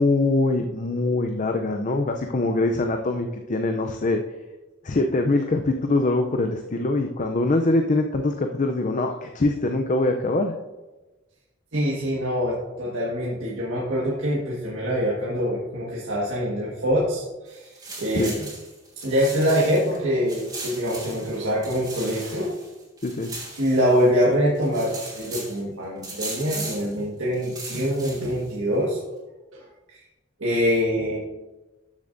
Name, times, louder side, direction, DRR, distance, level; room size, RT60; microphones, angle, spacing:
voice 1, 0.0-4.2 4.8-10.5 18.2-18.3 23.0-23.3, left 2 dB, 40° left, 4 dB, 0.5 m, -23 dB
voice 2, 11.7-18.5 19.0-22.5 23.5-29.0 29.5-30.0 30.4-31.2, equal, 90° right, -5 dB, 1.6 m, -24 dB
sound 1, 17.5-20.0 20.3-24.2 24.5-25.6 26.0-26.9 27.3-28.5, right 3 dB, 20° right, 2.6 m, -38 dB
13.0 x 6.9 x 2.6 m, 1.1 s
head